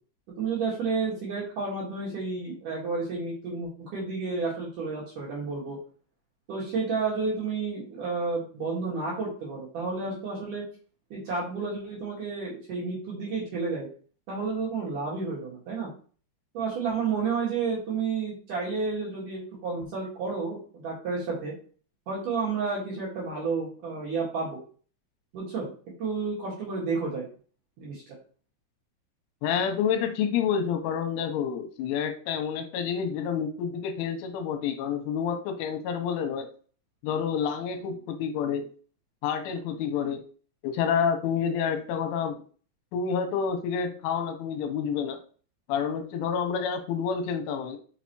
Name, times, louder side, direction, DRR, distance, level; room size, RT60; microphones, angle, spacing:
voice 1, 0.4-5.8 6.5-10.6 11.1-13.9 14.3-15.9 16.5-21.5 22.1-24.6 25.3-25.7 26.0-27.3 27.8-28.0, right 4 dB, 55° right, -5 dB, 2.6 m, -31 dB
voice 2, 29.4-36.5 37.0-38.7 39.2-40.2 40.6-42.4 42.9-45.2 45.7-47.8, left 7 dB, 90° left, 6 dB, 3.2 m, -28 dB
6.1 x 5.6 x 3.0 m, 0.41 s
omnidirectional pair, 5.7 m